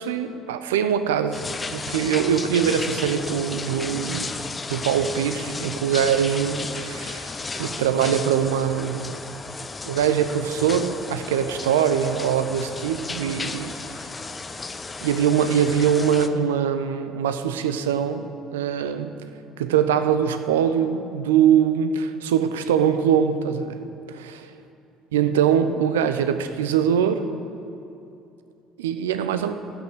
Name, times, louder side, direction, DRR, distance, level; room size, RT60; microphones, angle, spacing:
voice 1, 0.0-1.4 1.7-4.3 4.7-9.2 9.9-13.7 15.0-19.1 19.6-23.8 24.1-24.3 25.1-27.3 28.8-29.5, right 8 dB, 80° right, 10 dB, 0.6 m, -22 dB
sound 1, 1.3-16.3, left 3 dB, 25° left, 0.8 m, -34 dB
13.0 x 6.3 x 7.9 m, 2.7 s
hypercardioid pair, 55°, 0 cm